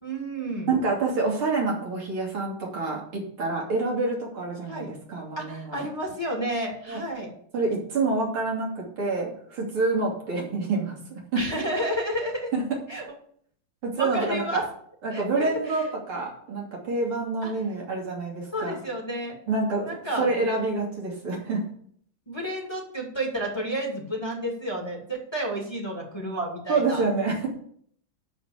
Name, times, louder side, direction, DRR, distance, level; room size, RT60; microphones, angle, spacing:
voice 1, 0.0-0.7 4.7-4.9 5.4-7.3 11.3-12.5 12.9-13.0 14.0-14.6 15.1-15.9 17.4-17.5 18.5-19.4 19.8-20.3 22.3-27.1, right 1 dB, 10° left, -1 dB, 2.4 m, -31 dB
voice 2, 0.7-5.9 6.9-7.0 7.5-11.4 12.5-12.6 13.8-14.7 15.0-18.8 19.5-19.8 20.2-21.6 26.7-27.5, right 3 dB, 75° right, -3 dB, 3.8 m, -27 dB
12.5 x 4.3 x 8.2 m, 0.62 s
omnidirectional pair, 2.3 m